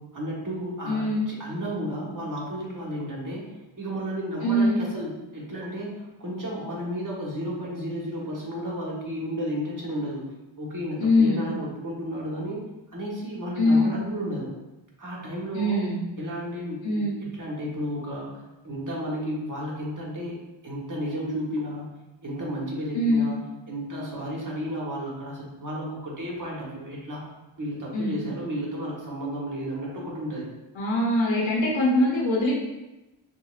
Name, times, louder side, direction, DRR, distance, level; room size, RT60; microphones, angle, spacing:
voice 1, 0.0-3.5 3.8-10.2 10.6-12.6 12.9-14.6 15.0-15.8 16.2-17.1 17.4-18.3 18.6-20.4 20.6-22.0 22.2-27.3 27.6-30.5, equal, 40° right, -4 dB, 1.3 m, -33 dB
voice 2, 0.9-1.3 4.4-4.8 11.0-11.5 13.6-13.9 15.5-16.0 16.8-17.1 22.9-23.3 27.9-28.2 30.7-32.5, left 1 dB, 75° left, -4 dB, 0.9 m, -22 dB
5.6 x 2.4 x 2.4 m, 1.0 s
wide cardioid pair, 80°, 46 cm